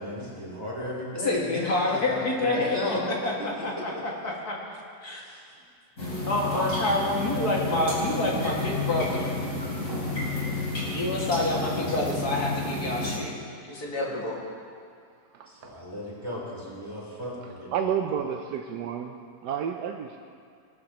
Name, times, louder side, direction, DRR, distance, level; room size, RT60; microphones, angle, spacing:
voice 1, 0.0-3.0 3.5-3.6 3.9-4.0 5.2-5.4 15.5-17.7, left 1 dB, 15° right, -7 dB, 3.5 m, -35 dB
voice 2, 1.2-3.0 3.2-4.6 5.0-5.2 6.0-9.3 10.9-13.4 13.7-14.4, left 2 dB, 65° left, -3 dB, 2.6 m, -28 dB
sound 1, 6.0-13.2, left 2 dB, 50° left, 4.0 m, -31 dB
voice 3, 15.3-15.8 17.4-20.2, right 8 dB, 85° right, 4 dB, 1.2 m, -31 dB
19.5 x 12.5 x 3.0 m, 2.3 s
omnidirectional pair, 1.8 m